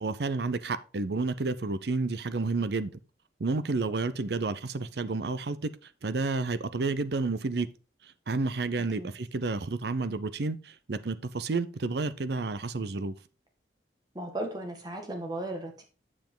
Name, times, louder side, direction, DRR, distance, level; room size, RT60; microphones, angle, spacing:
voice 1, 0.0-2.9 3.4-7.7 8.3-13.1, right 3 dB, 65° right, 0.6 m, -30 dB
voice 2, 8.8-9.1 14.1-15.8, right 1 dB, 20° right, 1.7 m, -36 dB
7.5 x 7.0 x 3.8 m
head